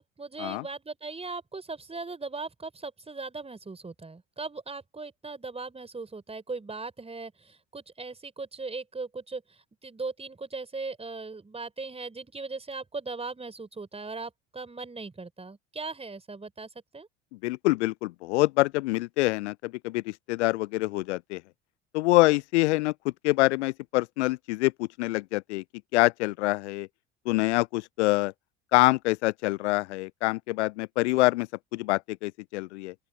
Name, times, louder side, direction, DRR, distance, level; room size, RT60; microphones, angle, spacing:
voice 1, 0.0-16.7 16.9-17.1, right 3 dB, 15° right, 4.6 m, -38 dB
voice 2, 17.4-21.4 21.9-25.6 25.9-26.9 27.3-28.3 28.7-32.9, left 20 dB, 65° left, 0.6 m, -25 dB
open air
figure-of-eight pair, 70°, 38 cm